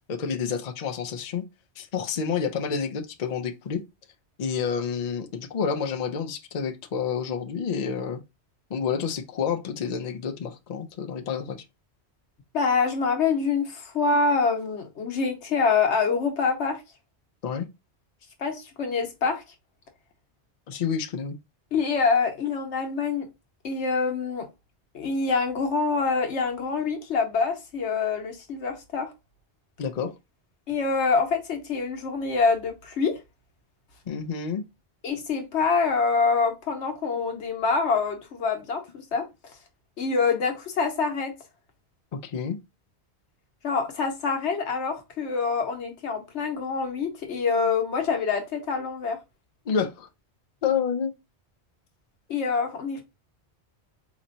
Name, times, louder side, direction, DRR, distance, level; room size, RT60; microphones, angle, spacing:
voice 1, 0.1-1.4 1.8-3.8 4.4-8.2 8.7-11.6 17.4-17.7 20.7-21.4 29.8-30.1 34.1-34.6 42.1-42.6 49.7-50.1 50.6-51.1, left 6 dB, 50° left, 0.5 m, -29 dB
voice 2, 12.5-16.8 18.4-19.4 21.7-23.3 23.6-24.5 24.9-29.1 30.7-33.2 35.0-39.3 40.0-41.3 43.6-49.2 52.3-53.0, left 4 dB, 90° left, 1.2 m, -25 dB
4.2 x 3.0 x 2.6 m
omnidirectional pair, 1.1 m